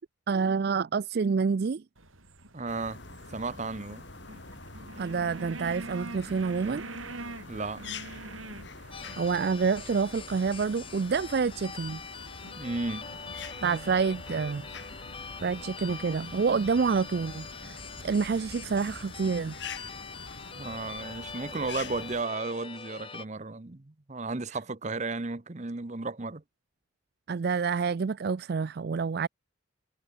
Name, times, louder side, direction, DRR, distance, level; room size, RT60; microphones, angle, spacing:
voice 1, 0.3-1.8 5.0-6.9 9.2-12.0 13.6-14.7 15.4-19.5 27.3-29.3, right 5 dB, 50° right, 0.4 m, -28 dB
sound 1, 2.0-19.1, right 2 dB, 85° right, 5.4 m, -47 dB
voice 2, 2.5-3.0 3.3-4.0 7.5-7.8 12.6-13.1 20.6-26.4, right 3 dB, 35° right, 0.8 m, -34 dB
sound 2, 2.7-22.2, left 3 dB, 60° left, 3.1 m, -45 dB
sound 3, 8.9-23.2, left 5 dB, 25° left, 3.0 m, -43 dB
head